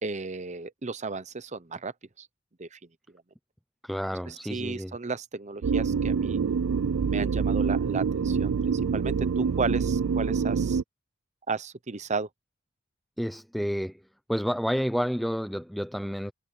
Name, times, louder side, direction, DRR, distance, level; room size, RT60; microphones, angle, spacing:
voice 1, 0.0-2.3 2.6-2.8 4.3-6.4 7.1-10.8 11.5-12.3, right 4 dB, 30° right, 0.8 m, -34 dB
voice 2, 3.8-5.0 13.2-14.0 14.3-16.3, equal, ahead, 0.4 m, -30 dB
sound 1, 5.6-10.8, right 6 dB, 65° right, 0.4 m, -26 dB
head